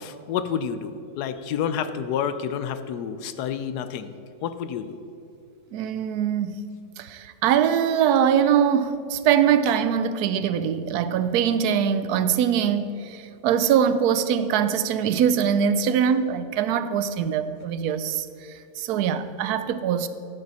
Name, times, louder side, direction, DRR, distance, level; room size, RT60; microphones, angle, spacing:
voice 1, 0.0-4.1 4.4-5.0, left 8 dB, 75° left, 11 dB, 1.1 m, -29 dB
voice 2, 5.7-6.6 7.0-20.1, right 8 dB, 75° right, 12 dB, 1.0 m, -23 dB
10.5 x 9.3 x 4.1 m, 2.6 s
omnidirectional pair, 1.8 m